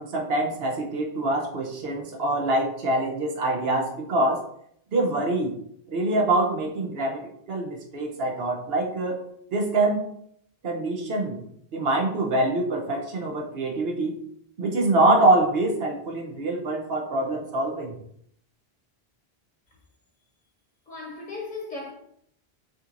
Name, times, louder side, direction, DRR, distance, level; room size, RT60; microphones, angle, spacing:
voice 1, 0.0-4.4 4.9-5.6 5.9-9.2 9.5-10.0 10.6-11.4 11.7-14.2 14.6-17.9, right 2 dB, 70° right, 1.1 m, -25 dB
voice 2, 20.9-21.9, left 3 dB, 50° left, 0.9 m, -36 dB
6.3 x 3.0 x 2.5 m
omnidirectional pair, 1.1 m